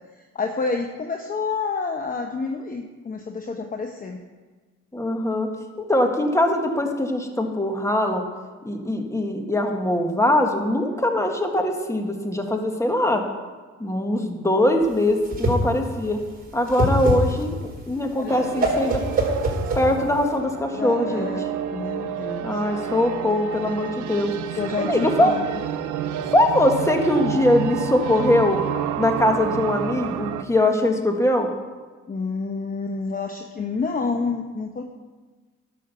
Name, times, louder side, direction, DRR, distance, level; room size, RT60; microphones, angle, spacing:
voice 1, 0.2-4.2 18.2-18.5 20.7-22.8 24.6-25.5 32.1-34.8, left 4 dB, 30° left, 4 dB, 0.9 m, -29 dB
voice 2, 4.9-5.5 5.8-8.2 8.6-13.2 13.8-16.2 16.5-17.6 17.9-19.0 19.7-21.3 22.4-24.6 24.9-25.3 26.3-28.6 29.0-31.5, left 1 dB, 10° left, 4 dB, 1.6 m, -22 dB
Whoosh swoosh swish, 14.8-20.3, equal, 30° right, 4.3 m, -24 dB
sound 1, 18.3-30.4, right 9 dB, 80° right, 0.7 m, -30 dB
11.5 x 6.4 x 6.8 m, 1.4 s
cardioid pair, 90°, 30 cm